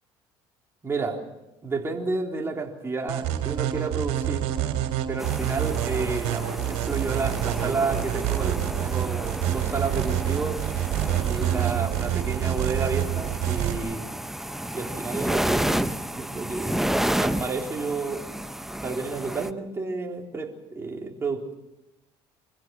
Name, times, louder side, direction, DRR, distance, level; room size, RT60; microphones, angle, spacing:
voice 1, 0.8-1.2 1.6-4.5 5.1-10.6 11.2-14.1 14.7-16.8 17.2-18.3 18.8-21.5, right 4 dB, 25° right, 1 dB, 3.8 m, -31 dB
sound 1, 3.1-13.8, right 11 dB, 80° right, 3.5 m, -27 dB
sound 2, 5.2-19.5, right 1 dB, 5° right, 0.8 m, -31 dB
26.0 x 16.0 x 7.7 m, 0.97 s
supercardioid pair, 100°, 11 cm